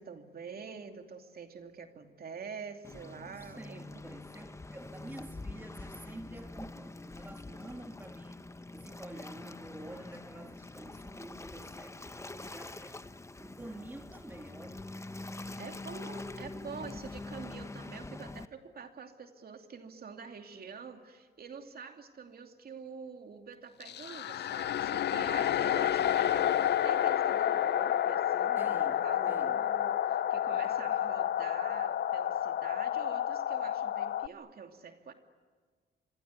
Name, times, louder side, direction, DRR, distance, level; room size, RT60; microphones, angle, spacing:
voice 1, 0.0-3.8 15.6-35.1, right 5 dB, 50° right, 5 dB, 2.8 m, -46 dB
Waves surf, 2.8-18.5, left 2 dB, 15° left, 1.0 m, -45 dB
voice 2, 3.4-8.4 8.7-13.0 13.4-15.0 28.6-29.6 30.6-31.0, right 1 dB, 10° right, 5 dB, 1.9 m, -49 dB
sound 1, 23.8-34.3, left 11 dB, 60° left, 0.7 m, -30 dB
26.0 x 23.5 x 9.6 m, 1.5 s
cardioid pair, 90°, 20 cm